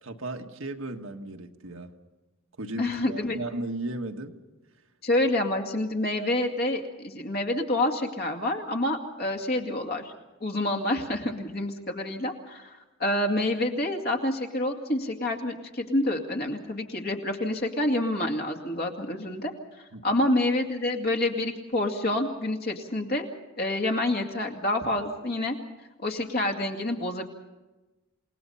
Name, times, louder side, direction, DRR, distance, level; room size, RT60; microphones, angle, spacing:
voice 1, 0.0-1.9 2.6-4.3 19.9-20.2, right 2 dB, 70° right, 4 dB, 1.6 m, -35 dB
voice 2, 2.8-3.4 5.0-10.1 10.4-19.5 20.0-23.3 23.6-25.5 26.0-27.2, left 1 dB, 45° left, 4 dB, 2.3 m, -28 dB
28.5 x 18.5 x 5.7 m, 1.1 s
head